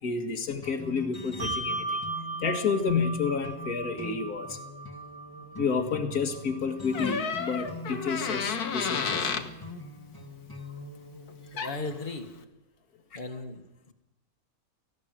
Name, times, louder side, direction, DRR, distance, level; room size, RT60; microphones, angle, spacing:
voice 1, 0.0-2.0 2.4-4.6 5.6-9.3 13.1-13.2, left 5 dB, 75° left, 6 dB, 2.2 m, -30 dB
sound 1, 0.6-11.9, left 2 dB, 15° left, 1.6 m, -43 dB
Bell, 1.4-8.3, right 2 dB, 80° right, 4.2 m, -38 dB
Door, 6.9-9.5 11.3-11.4 11.6-11.9, left 6 dB, 90° left, 1.9 m, -31 dB
voice 2, 11.5-12.3 13.1-13.9, left 2 dB, 35° left, 4 dB, 1.9 m, -37 dB
18.5 x 16.0 x 9.1 m, 0.94 s
omnidirectional pair, 1.6 m